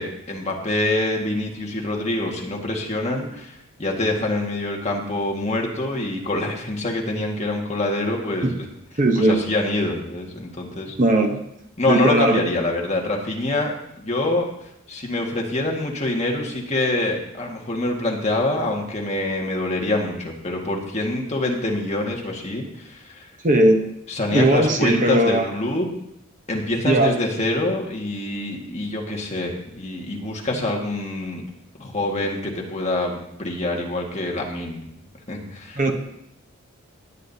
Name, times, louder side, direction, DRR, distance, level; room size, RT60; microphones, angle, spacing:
voice 1, 0.0-8.7 9.2-11.0 11.8-14.5 14.9-23.3 24.1-25.9 26.5-31.4 31.7-34.8 35.3-35.8, left 2 dB, 30° left, 0 dB, 1.7 m, -25 dB
voice 2, 9.0-9.4 11.0-11.4 11.9-12.4 23.4-23.8 24.3-25.5 26.8-27.1 35.8-35.9, right 1 dB, 35° right, 4 dB, 0.9 m, -18 dB
18.0 x 9.5 x 2.8 m, 0.78 s
head